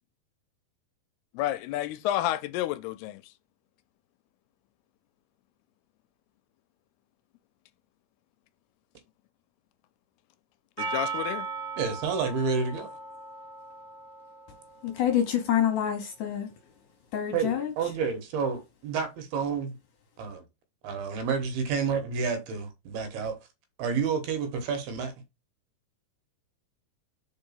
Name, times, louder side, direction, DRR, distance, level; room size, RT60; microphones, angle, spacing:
voice 1, 1.3-3.2 10.8-11.5, left 13 dB, 85° left, 2.4 m, -30 dB
Percussion, 10.8-15.1, right 4 dB, 35° right, 1.2 m, -37 dB
voice 2, 11.8-12.9 17.3-19.7 20.2-20.4 20.8-23.4 23.8-25.1, right 5 dB, 75° right, 3.2 m, -29 dB
voice 3, 14.8-16.5 17.1-17.9, left 9 dB, 70° left, 2.1 m, -27 dB
5.2 x 4.9 x 5.7 m
omnidirectional pair, 4.7 m